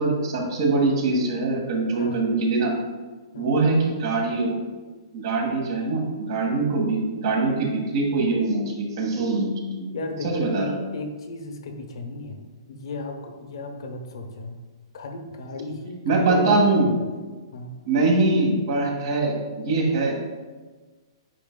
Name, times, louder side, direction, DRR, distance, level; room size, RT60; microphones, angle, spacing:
voice 1, 0.0-2.7 3.4-4.5 5.1-9.9 10.2-10.8 16.1-16.9 17.8-20.1, right 3 dB, 55° right, 0 dB, 1.7 m, -23 dB
voice 2, 9.9-14.6 14.9-17.1 17.5-17.7, left 3 dB, 70° left, 4 dB, 1.0 m, -34 dB
9.0 x 4.6 x 2.3 m, 1.3 s
hypercardioid pair, 155°, 3 cm